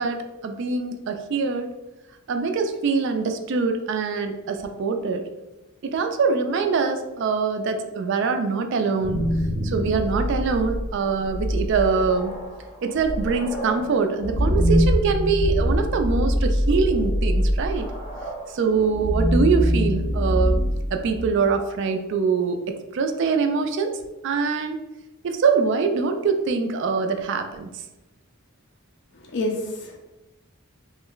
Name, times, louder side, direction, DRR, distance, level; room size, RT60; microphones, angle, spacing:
voice 1, 0.0-1.7 2.3-5.2 5.8-9.2 9.6-12.3 12.8-17.9 18.5-20.6 20.9-24.0 24.2-24.8 25.2-27.7, right 5 dB, 55° right, 6 dB, 0.3 m, -24 dB
sound 1, 8.8-21.6, equal, 15° left, 0.7 m, -24 dB
voice 2, 29.1-30.0, left 1 dB, 50° left, 0 dB, 0.4 m, -28 dB
3.1 x 2.1 x 3.7 m, 1.0 s
head